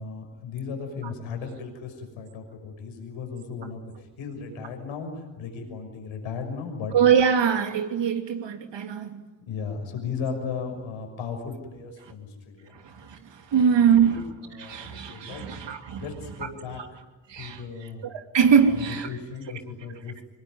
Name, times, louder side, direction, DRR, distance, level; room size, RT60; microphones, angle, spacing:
voice 1, 0.0-7.0 9.5-12.7 13.7-17.0 17.4-18.1 18.6-20.2, left 5 dB, 75° left, 5 dB, 6.2 m, -36 dB
voice 2, 6.9-9.2 12.8-13.2 13.5-14.2 14.6-16.0 17.3-17.6 18.0-19.1, right 7 dB, 60° right, 6 dB, 3.0 m, -22 dB
25.0 x 22.0 x 9.4 m, 1.2 s
hypercardioid pair, 40°, 49 cm